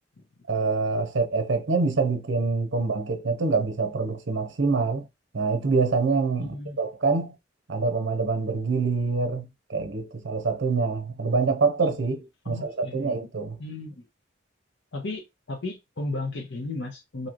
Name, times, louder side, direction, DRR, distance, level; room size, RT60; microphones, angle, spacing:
voice 1, 0.5-5.1 5.3-6.5 6.8-7.3 7.7-13.6, right 4 dB, 75° right, 0.7 m, -25 dB
voice 2, 6.4-6.8 12.4-13.1 13.6-14.1 14.9-17.3, left 2 dB, 70° left, 0.8 m, -34 dB
3.0 x 2.8 x 2.4 m
head